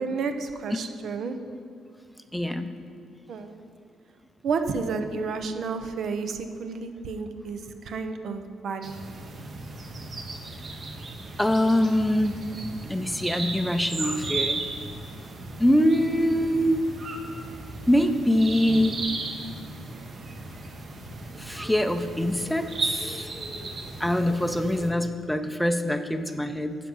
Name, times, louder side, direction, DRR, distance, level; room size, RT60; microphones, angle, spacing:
voice 1, 0.0-1.4 3.3-3.5 4.4-9.0, right 4 dB, 65° right, 7 dB, 0.8 m, -31 dB
voice 2, 2.3-2.7 11.4-14.6 15.6-16.8 17.9-19.0 21.4-23.3 24.0-26.8, equal, 5° left, 8 dB, 0.5 m, -24 dB
sound 1, 8.8-24.9, right 3 dB, 50° right, 1.3 m, -36 dB
10.0 x 6.0 x 5.5 m, 2.4 s
cardioid pair, 90°, 0 cm